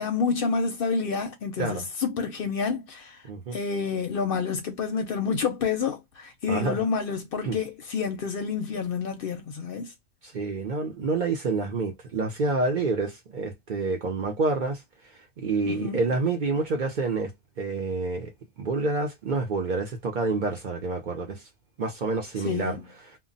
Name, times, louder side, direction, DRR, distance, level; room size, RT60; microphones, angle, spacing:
voice 1, 0.0-3.2 3.5-9.9 15.7-16.0 22.4-22.8, left 5 dB, 60° left, 0.7 m, -29 dB
voice 2, 3.2-3.6 6.5-6.8 7.4-7.6 10.2-14.8 15.4-17.3 17.6-18.3 18.6-21.4 21.8-22.8, right 3 dB, 50° right, 0.6 m, -28 dB
2.2 x 2.0 x 3.8 m
omnidirectional pair, 1.2 m